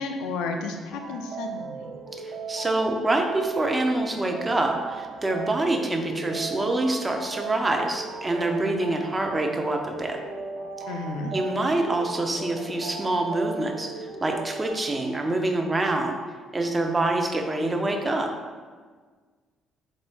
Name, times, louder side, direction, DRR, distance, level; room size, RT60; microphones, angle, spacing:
voice 1, 0.0-1.9 10.9-11.3, left 3 dB, 70° left, 5 dB, 0.4 m, -32 dB
sound 1, 0.9-14.7, right 4 dB, 55° right, 0.8 m, -37 dB
voice 2, 2.2-10.2 11.3-16.2 16.5-18.3, right 2 dB, 25° right, 3 dB, 0.6 m, -26 dB
4.4 x 2.6 x 3.4 m, 1.5 s
figure-of-eight pair, 45°, 0 cm